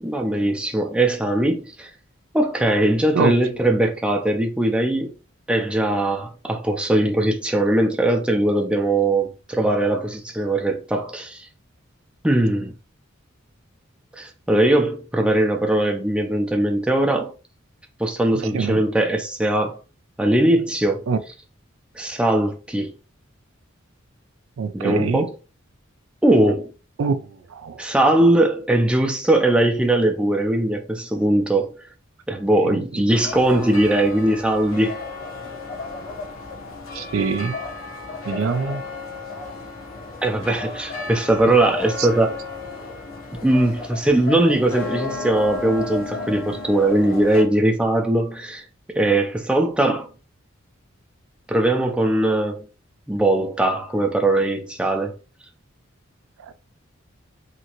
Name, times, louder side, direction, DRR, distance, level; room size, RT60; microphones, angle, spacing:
voice 1, 0.0-1.9 2.3-5.1 5.5-11.5 12.2-12.7 14.2-17.3 18.0-19.8 20.2-21.1 22.0-22.9 24.7-25.3 26.2-26.7 27.8-31.7 32.3-35.0 40.2-42.4 43.4-50.1 51.5-52.7 53.1-55.1, right 1 dB, 5° right, 0.4 m, -20 dB
voice 2, 24.6-25.3 27.0-27.2 27.5-27.8 32.7-32.8 36.9-37.6 38.3-38.8 42.0-42.1, right 5 dB, 80° right, 0.4 m, -23 dB
sound 1, 33.1-47.4, left 3 dB, 85° left, 0.9 m, -33 dB
2.9 x 2.7 x 2.9 m
head